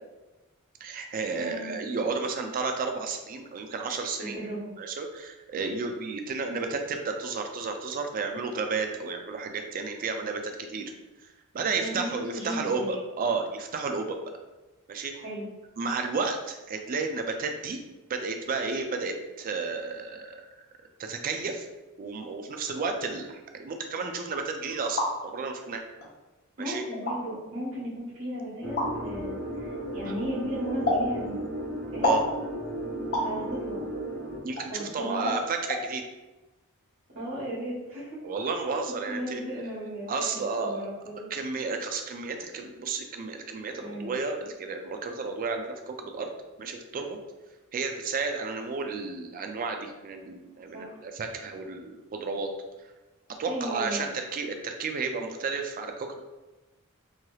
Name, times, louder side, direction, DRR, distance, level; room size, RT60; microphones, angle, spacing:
voice 1, 0.8-4.4 4.8-10.9 11.5-14.2 14.9-15.1 15.8-17.8 18.1-20.4 21.0-21.7 22.0-25.8 26.6-26.8 30.0-30.1 32.0-32.2 34.4-36.0 38.2-39.4 40.1-40.9 41.3-46.3 46.6-47.2 47.7-52.5 53.4-56.2, right 4 dB, 40° right, 5 dB, 0.3 m, -32 dB
voice 2, 1.3-1.7 4.2-4.7 11.6-13.0 15.1-15.5 26.6-31.4 31.9-32.1 33.2-33.8 34.7-35.3 37.1-38.2 39.1-41.3 43.8-44.1 50.7-51.0 53.4-54.1, equal, 65° right, -8 dB, 1.3 m, -35 dB
sound 1, 24.7-25.1 26.0-26.1 26.9-27.2 28.8-28.9 30.9-31.1 32.0-32.3 33.1-33.3 34.6-34.7 35.3-35.4 35.7-35.8, left 1 dB, 50° left, 0.7 m, -26 dB
sound 2, 28.6-34.4, right 1 dB, 10° left, 0.6 m, -35 dB
3.1 x 2.8 x 2.3 m, 1.1 s
head